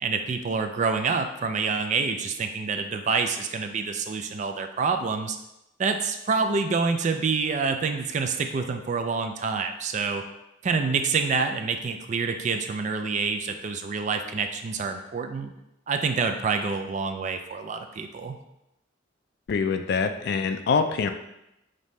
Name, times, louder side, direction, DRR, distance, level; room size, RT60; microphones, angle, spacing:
voice 1, 0.0-5.4 5.8-10.2 10.6-15.5 15.9-18.4, right 4 dB, 40° right, 6 dB, 0.3 m, -27 dB
voice 2, 19.5-21.1, left 5 dB, 55° left, 8 dB, 0.3 m, -24 dB
5.1 x 2.7 x 3.1 m, 0.87 s
head